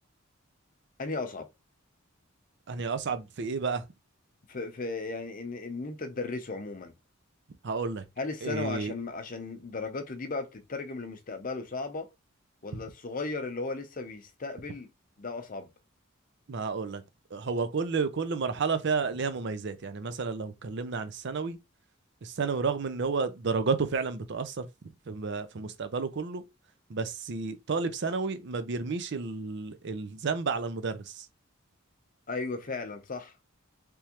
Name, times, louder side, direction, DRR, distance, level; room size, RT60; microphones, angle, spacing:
voice 1, 1.0-1.5 4.5-6.9 8.2-12.1 12.6-14.9 15.2-15.7 32.3-33.3, left 3 dB, 40° left, 0.6 m, -36 dB
voice 2, 2.7-3.8 7.6-8.0 8.4-8.9 16.5-17.0 17.3-21.6 22.2-24.7 25.1-26.4 26.9-31.3, right 4 dB, 55° right, 0.5 m, -31 dB
3.5 x 3.0 x 2.9 m
head